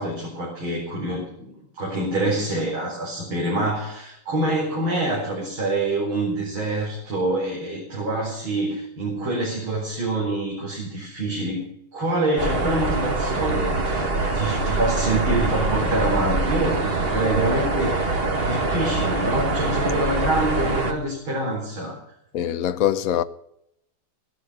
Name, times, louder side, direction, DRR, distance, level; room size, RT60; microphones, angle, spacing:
voice 1, 0.0-11.7 11.9-22.0, right 2 dB, 70° right, 5.3 m, -26 dB
sound 1, 12.4-20.9, right 3 dB, 30° right, 1.8 m, -24 dB
voice 2, 22.3-23.2, left 11 dB, 60° left, 1.0 m, -23 dB
16.5 x 12.0 x 5.6 m
omnidirectional pair, 2.3 m